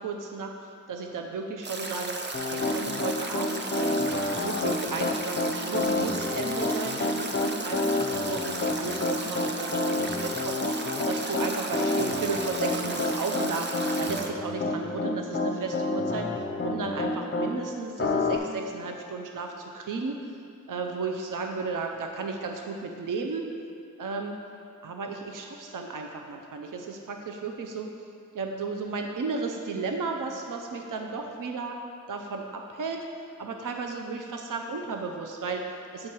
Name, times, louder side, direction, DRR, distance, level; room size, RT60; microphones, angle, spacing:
voice 1, 0.0-2.2 2.5-4.1 4.4-20.2 20.7-23.5 24.0-24.4 24.8-27.9 28.3-31.8 32.1-33.0 33.4-36.1, right 4 dB, 75° right, 3 dB, 0.5 m, -34 dB
Stream / Drip / Trickle dribble, 1.6-14.3, right 2 dB, 35° right, 0.6 m, -35 dB
Piano, 2.3-17.5 18.0-18.4, left 2 dB, 40° left, 0.5 m, -28 dB
7.4 x 4.4 x 4.7 m, 2.5 s
wide cardioid pair, 65°, 32 cm